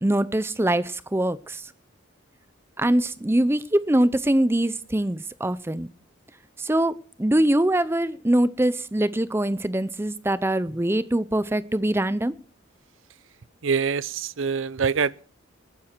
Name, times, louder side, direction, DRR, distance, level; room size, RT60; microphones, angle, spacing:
voice 1, 0.0-1.6 2.8-5.9 6.6-6.9 7.2-12.3, right 1 dB, 10° right, 0.5 m, -23 dB
voice 2, 13.6-15.2, right 6 dB, 70° right, 0.6 m, -25 dB
19.5 x 9.9 x 4.5 m
head